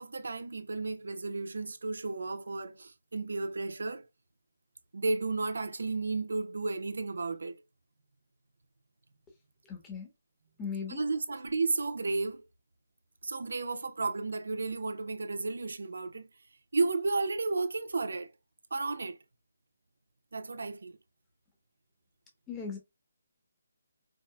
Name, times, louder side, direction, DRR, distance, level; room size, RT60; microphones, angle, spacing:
voice 1, 0.0-4.1 4.9-7.6 10.9-12.4 13.2-16.3 16.7-18.3 18.7-19.2 20.3-21.0, right 3 dB, 80° right, 0.6 m, -33 dB
voice 2, 9.7-10.1 10.6-11.0 22.5-22.8, left 5 dB, 10° left, 0.9 m, -37 dB
4.7 x 2.1 x 2.2 m
hypercardioid pair, 165°, 0 cm